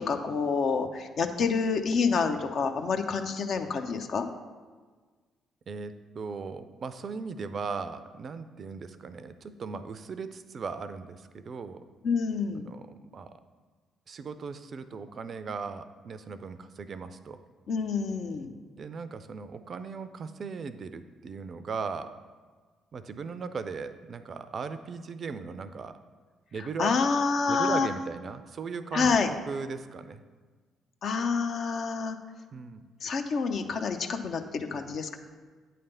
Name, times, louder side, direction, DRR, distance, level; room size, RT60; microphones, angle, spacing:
voice 1, 0.0-4.3 12.0-12.7 17.7-18.5 26.6-27.9 28.9-29.3 31.0-32.2 33.0-35.2, left 5 dB, 55° left, 6 dB, 0.5 m, -28 dB
voice 2, 5.7-11.8 12.5-13.3 14.1-17.4 18.8-22.1 22.9-26.0 26.5-26.9 27.5-29.2 29.5-30.2 32.5-32.8, right 5 dB, 45° right, 11 dB, 0.4 m, -38 dB
8.8 x 3.3 x 5.5 m, 1.4 s
figure-of-eight pair, 45°, 0 cm